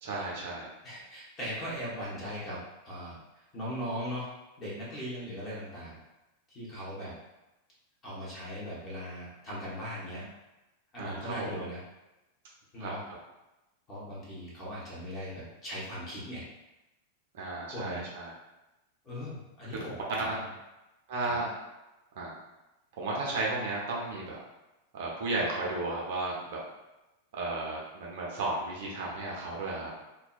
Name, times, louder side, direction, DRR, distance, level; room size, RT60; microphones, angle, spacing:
voice 1, 0.0-0.7 11.0-11.6 12.8-12.9 17.3-18.3 20.3-20.4 21.1-21.5 22.2-22.3 22.9-24.4 24.9-26.6 27.3-29.9, right 2 dB, 55° right, -3 dB, 0.6 m, -34 dB
voice 2, 0.8-3.2 3.5-4.3 4.6-6.0 6.5-7.1 8.0-10.3 10.9-11.8 12.7-13.0 13.9-16.4 17.7-18.0 19.0-20.4, equal, 30° left, -7 dB, 1.1 m, -39 dB
2.6 x 2.1 x 2.4 m, 1.0 s
figure-of-eight pair, 90°, 0 cm